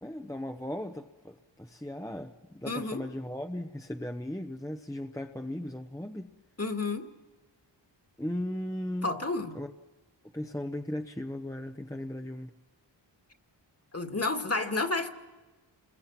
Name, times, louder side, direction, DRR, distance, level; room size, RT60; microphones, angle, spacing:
voice 1, 0.0-6.3 8.2-9.1 9.5-9.7 10.3-12.5, left 1 dB, 5° left, 1.0 m, -37 dB
voice 2, 2.7-3.0 6.6-7.1 9.0-9.5 13.9-15.1, left 3 dB, 30° left, 2.1 m, -30 dB
29.5 x 22.0 x 7.4 m
wide cardioid pair, 70°, 45 cm